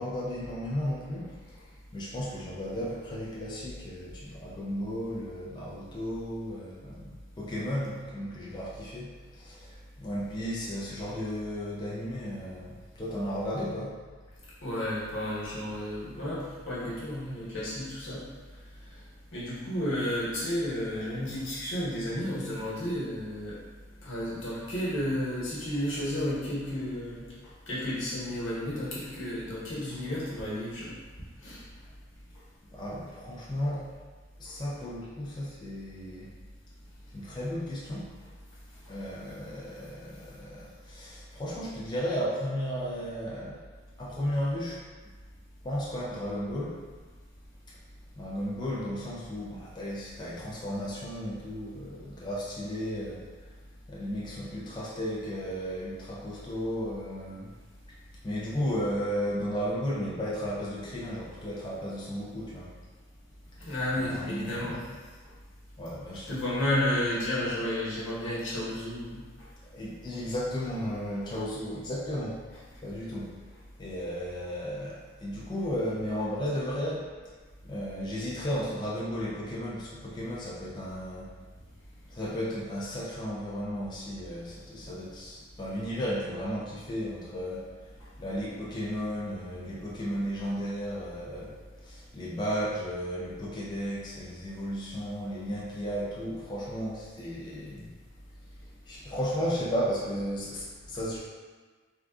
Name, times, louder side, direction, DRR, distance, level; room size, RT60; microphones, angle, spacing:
voice 1, 0.0-1.4 1.9-14.0 32.7-33.9 34.4-36.3 37.1-38.1 38.9-43.6 44.0-44.8 45.6-46.8 47.7-47.8 48.2-53.2 53.9-57.5 58.2-62.7 63.6-64.8 65.8-66.4 69.6-72.4 72.8-73.3 73.8-77.1 77.6-81.3 82.1-87.9 88.2-98.0 98.9-101.2, equal, 25° left, -6 dB, 0.4 m, -34 dB
voice 2, 14.6-18.2 19.3-23.6 24.0-27.2 27.7-30.9 31.4-31.6 63.6-64.8 66.3-69.2, left 1 dB, 85° left, -9 dB, 1.1 m, -32 dB
3.7 x 2.3 x 2.3 m, 1.4 s
head